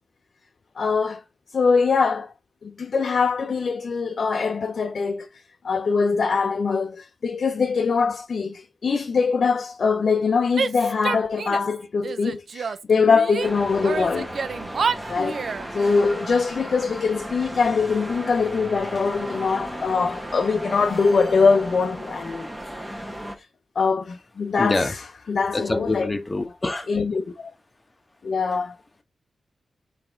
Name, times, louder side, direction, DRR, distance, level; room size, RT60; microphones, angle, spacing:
voice 1, 0.8-1.2 1.5-2.3 2.6-5.3 5.6-14.3 15.1-15.5 15.7-22.5 22.9-23.5 23.8-25.0 25.3-26.1 26.9-27.5 28.2-28.8, left 5 dB, 60° left, 0.5 m, -23 dB
Female speech woman speaking / Yell, 10.5-11.7 12.0-13.5 13.8-15.7, right 5 dB, 65° right, 0.4 m, -28 dB
sound 1, 13.4-23.4, right 1 dB, 10° right, 1.1 m, -35 dB
voice 2, 24.6-24.9 25.5-26.9, left 2 dB, 25° left, 1.0 m, -25 dB
4.1 x 3.3 x 3.7 m
cardioid pair, 65°, 0 cm